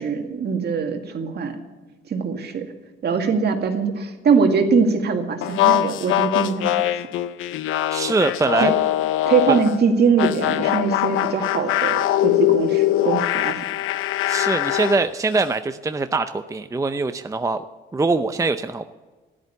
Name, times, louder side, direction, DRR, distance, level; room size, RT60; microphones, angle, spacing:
voice 1, 0.0-1.6 2.1-2.6 3.0-6.7 8.6-8.7 9.2-13.6, right 5 dB, 55° right, 5 dB, 2.0 m, -22 dB
sound 1, 5.4-9.7 10.2-15.0, left 13 dB, 90° left, 0.6 m, -22 dB
voice 2, 7.9-8.7 9.5-9.6 14.3-17.6 17.9-18.8, right 3 dB, 15° right, 9 dB, 0.6 m, -23 dB
13.0 x 11.0 x 7.0 m, 1.3 s
cardioid pair, 90°, 20 cm